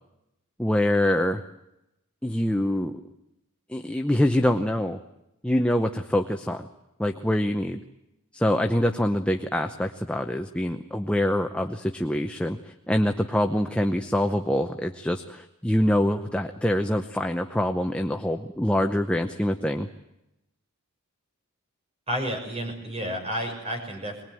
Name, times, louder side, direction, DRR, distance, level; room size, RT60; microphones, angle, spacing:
voice 1, 0.6-1.4 2.2-3.0 3.7-5.0 5.4-6.7 7.0-7.8 8.3-19.9, left 1 dB, 5° left, 5 dB, 0.8 m, -25 dB
voice 2, 22.1-24.2, equal, 30° right, 4 dB, 6.0 m, -31 dB
22.5 x 20.5 x 9.2 m, 0.88 s
head